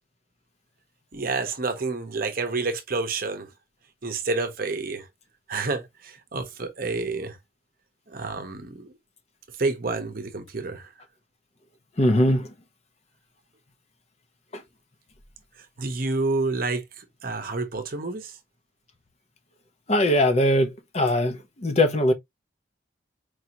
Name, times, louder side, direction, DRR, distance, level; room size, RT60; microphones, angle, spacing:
voice 1, 1.1-3.5 4.0-5.1 5.5-7.4 8.1-8.9 9.6-10.9 15.8-18.4, right 3 dB, 45° right, 0.8 m, -29 dB
voice 2, 12.0-12.5 19.9-22.1, left 1 dB, 30° left, 0.6 m, -21 dB
4.6 x 2.7 x 2.8 m
head